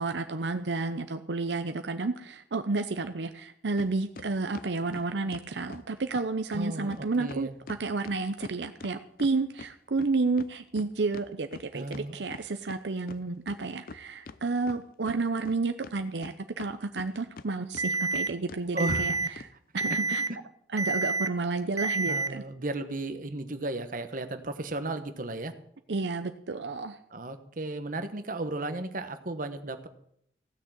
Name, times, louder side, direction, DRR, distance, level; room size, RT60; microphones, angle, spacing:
voice 1, 0.0-19.1 19.7-20.2 20.7-22.4 25.9-27.0, right 3 dB, 75° right, 8 dB, 0.7 m, -31 dB
sound 1, 3.8-3.9 4.2-5.9 6.1-6.2 6.5-6.6 6.9-7.0 7.3-9.7 10.0-12.8 13.1-13.2 13.5-14.4 14.7-15.6 15.8-17.5 17.7-18.2 18.5-18.6 18.9-19.0 19.4-19.5 19.8-20.0, left 3 dB, 55° left, 0.6 m, -44 dB
voice 2, 6.5-7.5 11.7-12.2 18.7-19.3 22.1-25.5 27.1-29.9, right 2 dB, 50° right, 9 dB, 1.2 m, -34 dB
Alarm, 17.8-18.3 18.8-19.3 19.8-20.3 20.8-21.3 21.8-22.3, right 3 dB, 20° right, 0.4 m, -28 dB
15.5 x 6.5 x 9.0 m, 0.71 s
head